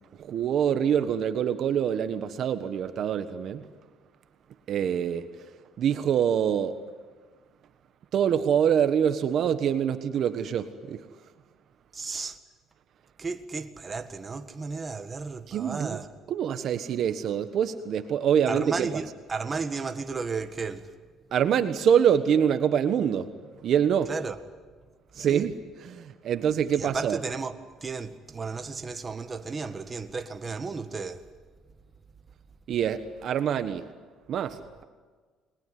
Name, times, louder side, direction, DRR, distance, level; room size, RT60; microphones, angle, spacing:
voice 1, 0.2-3.6 4.7-5.3 5.8-6.8 8.1-11.0 15.5-16.0 16.3-18.9 21.3-23.3 23.6-24.1 25.2-27.2 32.7-33.8 34.3-34.8, right 8 dB, 55° right, 1.4 m, -25 dB
voice 2, 11.9-12.4 13.2-16.1 18.5-20.9 24.1-24.4 25.2-25.5 26.7-31.2, right 4 dB, 25° right, 1.7 m, -34 dB
29.5 x 21.0 x 9.5 m
cardioid pair, 115°, 0 cm